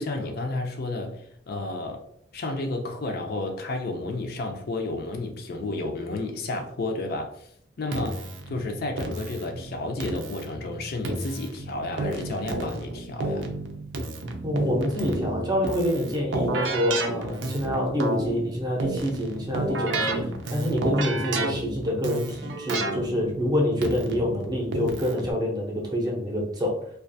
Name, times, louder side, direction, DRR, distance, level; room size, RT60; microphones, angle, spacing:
voice 1, 0.0-2.0 2.3-7.5 7.8-13.5, left 2 dB, 55° left, 4 dB, 0.4 m, -32 dB
Keyboard (musical), 7.9-25.3, right 2 dB, 85° right, 0.5 m, -31 dB
voice 2, 14.4-26.8, equal, 25° right, 0 dB, 0.6 m, -27 dB
2.4 x 2.3 x 2.6 m, 0.66 s
head